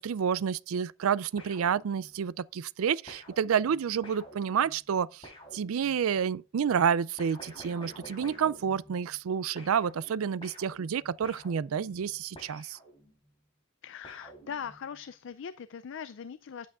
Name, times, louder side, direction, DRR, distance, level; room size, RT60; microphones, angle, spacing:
voice 1, 0.0-5.3 5.5-12.8, right 7 dB, 75° right, 0.4 m, -29 dB
sound 1, 1.4-2.4 3.1-6.2 7.2-9.3 9.6-13.3 14.0-15.0, equal, 25° left, 3.5 m, -51 dB
voice 2, 13.8-16.7, left 7 dB, 60° left, 0.4 m, -40 dB
10.0 x 8.4 x 2.4 m
head